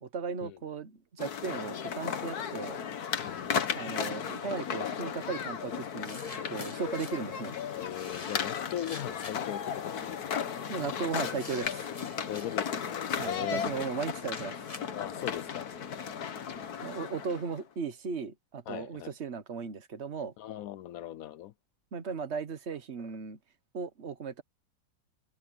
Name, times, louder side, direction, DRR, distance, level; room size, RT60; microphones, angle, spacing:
voice 1, 0.0-2.8 3.7-7.6 10.7-11.9 13.2-14.6 16.8-20.3 21.9-23.4 23.7-24.4, right 5 dB, 40° right, 1.3 m, -36 dB
sound 1, 1.2-17.6, left 7 dB, 55° left, 1.6 m, -35 dB
voice 2, 3.2-3.9 7.8-10.4 12.3-13.7 14.9-15.7 18.7-19.1 20.4-21.5, left 12 dB, 80° left, 0.7 m, -40 dB
sound 2, 5.5-5.6 6.0-7.2 7.9-9.6 10.4-10.7 11.4-12.6 13.3-15.5, left 3 dB, 25° left, 1.0 m, -47 dB
omnidirectional pair, 2.1 m